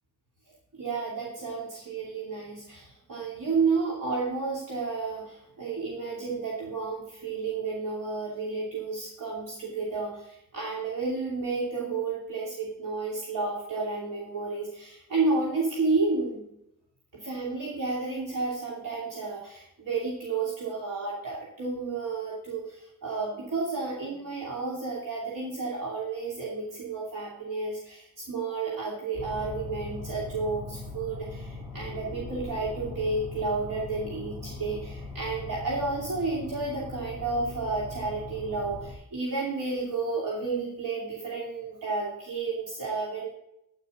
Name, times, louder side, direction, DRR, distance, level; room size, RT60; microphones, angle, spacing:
voice 1, 0.7-16.5 17.1-43.3, right 3 dB, 70° right, -5 dB, 2.8 m, -31 dB
sound 1, 29.1-38.9, left 3 dB, 10° right, 2.4 m, -40 dB
9.9 x 9.9 x 3.8 m, 0.83 s
wide cardioid pair, 115°, 34 cm